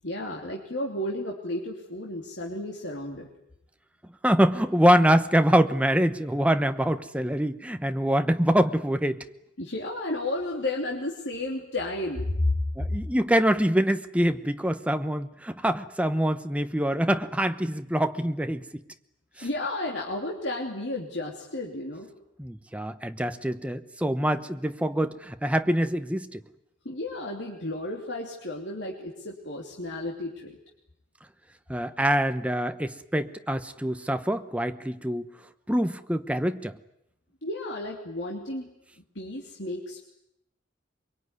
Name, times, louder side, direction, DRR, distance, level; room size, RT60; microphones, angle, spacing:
voice 1, 0.0-3.3 9.6-12.6 19.4-22.1 26.8-30.6 37.4-38.7 39.1-40.0, left 1 dB, 65° left, -1 dB, 3.0 m, -32 dB
voice 2, 4.2-9.2 12.8-18.8 22.4-26.4 31.7-35.2 35.7-36.8, equal, 5° right, 9 dB, 1.0 m, -25 dB
23.5 x 23.5 x 9.6 m, 0.80 s
head